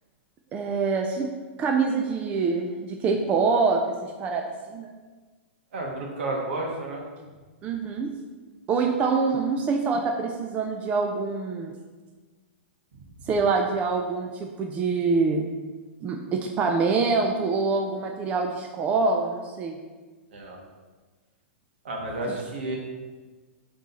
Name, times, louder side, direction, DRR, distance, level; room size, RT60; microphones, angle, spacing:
voice 1, 0.5-1.3 1.6-4.9 7.6-8.1 8.7-11.8 13.3-15.5 16.0-19.8, right 4 dB, 20° right, 2 dB, 0.5 m, -25 dB
voice 2, 5.7-7.0 20.3-20.6 21.8-22.7, right 2 dB, 65° right, -1 dB, 2.2 m, -31 dB
11.0 x 4.0 x 4.2 m, 1.4 s
hypercardioid pair, 150°, 7 cm